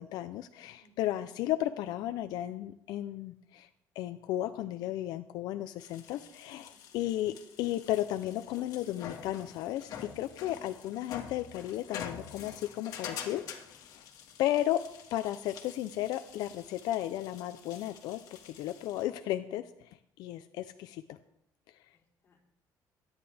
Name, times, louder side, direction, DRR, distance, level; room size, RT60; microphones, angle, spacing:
voice 1, 0.0-3.7 4.0-14.0 14.4-14.8 15.1-21.2 21.7-21.8, left 13 dB, 80° left, 9 dB, 0.6 m, -34 dB
voice 2, 0.7-1.2 6.7-7.0 21.9-22.4, left 1 dB, 35° left, -2 dB, 3.7 m, -67 dB
sound 1, 5.8-19.0, left 8 dB, 65° left, 1.9 m, -47 dB
23.5 x 9.8 x 3.5 m, 0.75 s
cardioid pair, 170°, 7 cm